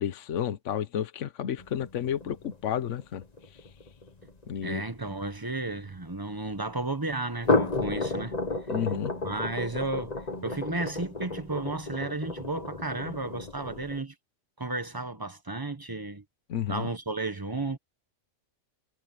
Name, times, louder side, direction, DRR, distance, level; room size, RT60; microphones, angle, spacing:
voice 1, 0.0-3.2 4.5-4.8 8.7-9.1 16.5-16.9, left 9 dB, 75° left, 1.2 m, -31 dB
sound 1, 1.6-6.1 7.3-14.0, left 3 dB, 35° left, 1.5 m, -32 dB
voice 2, 4.6-8.3 9.2-14.1 14.6-16.2 16.7-17.8, right 2 dB, 20° right, 1.2 m, -33 dB
omnidirectional pair, 1.3 m